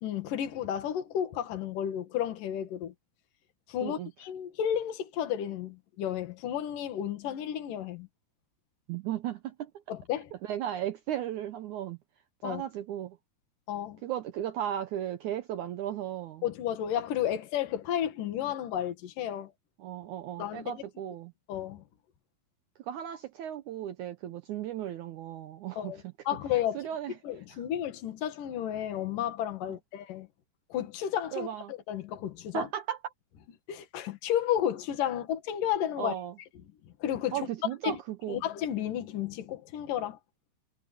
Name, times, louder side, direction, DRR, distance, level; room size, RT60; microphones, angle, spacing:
voice 1, 0.0-2.9 3.7-8.1 9.9-10.3 12.4-12.6 13.7-14.0 16.4-19.5 20.4-20.8 21.5-21.8 25.8-26.9 27.2-30.3 30.7-32.7 33.7-36.1 36.8-37.5 37.8-38.0 38.3-40.2, left 10 dB, 60° left, 3.4 m, -32 dB
voice 2, 8.9-9.7 10.4-12.0 12.4-13.2 14.0-16.4 19.8-21.3 22.8-25.9 26.7-27.1 27.5-27.6 31.3-31.7 32.5-33.0 36.0-36.4 37.3-38.4, right 11 dB, 80° right, 1.8 m, -35 dB
omnidirectional pair, 4.5 m